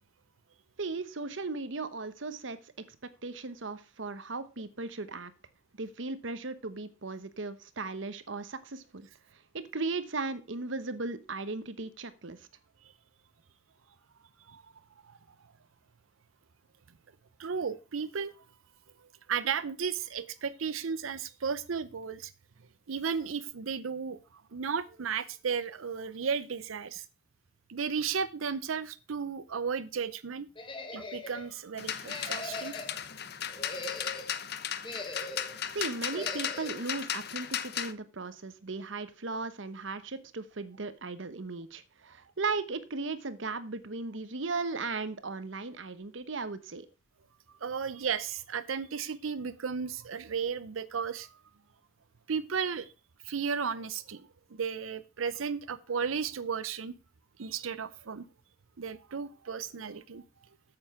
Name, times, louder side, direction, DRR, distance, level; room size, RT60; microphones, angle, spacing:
voice 1, 0.8-3.0 3.2-5.3 5.8-12.5 35.7-46.9, right 3 dB, 70° right, 1.0 m, -37 dB
voice 2, 17.4-18.4 19.3-22.3 22.9-27.0 27.7-30.5 30.9-32.7 47.6-51.4 52.3-52.9 53.2-56.9 57.4-58.3 58.8-60.2, right 6 dB, 90° right, 0.6 m, -34 dB
sound 1, 30.6-31.5 32.0-33.0 33.5-34.3 34.8-35.6 36.1-36.8, left 2 dB, 25° left, 1.4 m, -41 dB
sound 2, 31.8-37.9, left 9 dB, 55° left, 0.8 m, -36 dB
8.9 x 7.9 x 4.8 m
head